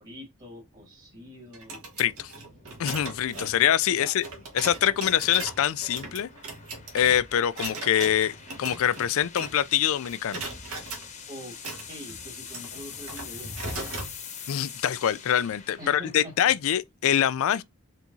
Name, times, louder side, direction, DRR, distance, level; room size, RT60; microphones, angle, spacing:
voice 1, 0.0-1.8 3.9-4.1 11.3-11.6 11.9-13.9 15.8-16.3 17.5-17.6, equal, 35° right, 1.8 m, -44 dB
sound 1, 0.6-16.9, left 7 dB, 35° left, 0.9 m, -46 dB
sound 2, 1.5-9.8 10.0-11.0 11.5-14.1, right 3 dB, 80° right, 1.5 m, -39 dB
voice 2, 2.0-2.3 2.8-4.2 4.5-6.3 6.9-10.4 14.5-17.6, left 10 dB, 65° left, 0.4 m, -24 dB
4.4 x 3.5 x 2.6 m
head